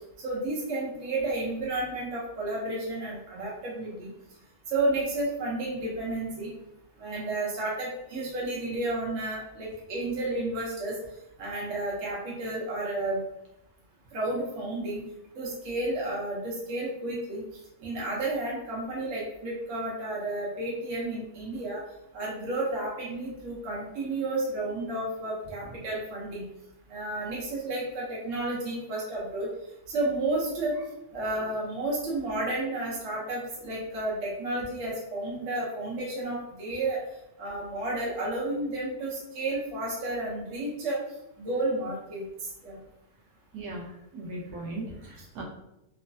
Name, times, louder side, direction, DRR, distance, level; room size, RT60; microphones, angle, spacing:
voice 1, 0.2-4.1 4.7-6.5 7.0-11.0 11.4-13.2 14.1-15.0 15.4-17.4 17.8-21.8 22.1-26.4 26.9-29.5 29.9-30.8 31.1-37.0 37.4-41.0 41.4-42.2 42.6-42.8, right 2 dB, 60° right, -5 dB, 1.1 m, -31 dB
voice 2, 43.5-45.4, right 2 dB, 80° right, -1 dB, 1.1 m, -38 dB
3.1 x 2.1 x 2.6 m, 0.87 s
omnidirectional pair, 1.6 m